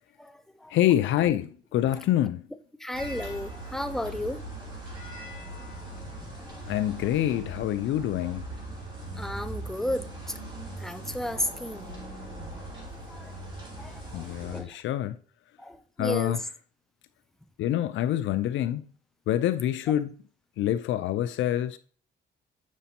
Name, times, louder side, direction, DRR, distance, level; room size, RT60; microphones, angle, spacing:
voice 1, 0.2-0.7 2.8-4.4 6.2-6.6 9.1-10.4 10.8-11.9 13.1-13.3 13.8-14.8 15.6-16.4, left 1 dB, ahead, 0.4 m, -34 dB
voice 2, 0.7-2.5 6.7-8.5 14.1-15.2 16.0-16.4 17.6-18.9 19.3-20.1 20.6-21.8, left 12 dB, 75° left, 0.4 m, -26 dB
sound 1, 2.9-14.6, right 2 dB, 25° right, 2.7 m, -40 dB
7.2 x 5.0 x 2.8 m
cardioid pair, 90°, 20 cm